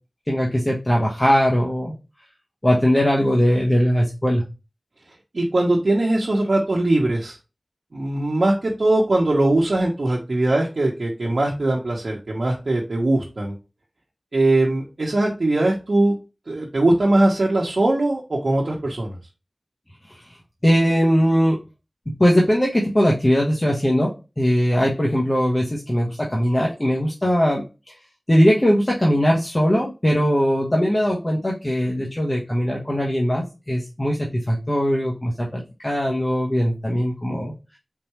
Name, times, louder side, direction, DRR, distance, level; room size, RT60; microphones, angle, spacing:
voice 1, 0.3-1.9 2.6-4.4 20.1-20.2 20.6-21.6 22.2-27.6 28.3-37.5, equal, 30° left, -2 dB, 1.1 m, -20 dB
voice 2, 5.3-7.4 7.9-13.5 14.3-16.2 16.5-19.1, right 2 dB, 85° right, -3 dB, 1.0 m, -20 dB
4.6 x 3.8 x 3.0 m, 0.28 s
wide cardioid pair, 55°, 0 cm